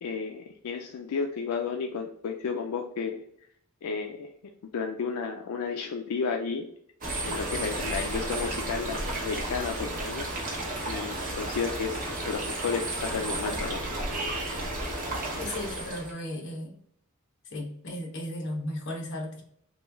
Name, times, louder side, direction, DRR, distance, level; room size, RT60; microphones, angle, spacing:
voice 1, 0.0-3.2 3.8-4.3 4.7-6.7 7.2-13.8, left 5 dB, 85° left, 3 dB, 0.4 m, -32 dB
sound 1, 7.0-16.1, right 2 dB, 40° right, 0.8 m, -33 dB
voice 2, 15.3-16.8 17.4-19.4, left 1 dB, 55° left, 1 dB, 0.9 m, -35 dB
3.0 x 2.2 x 3.4 m, 0.68 s
head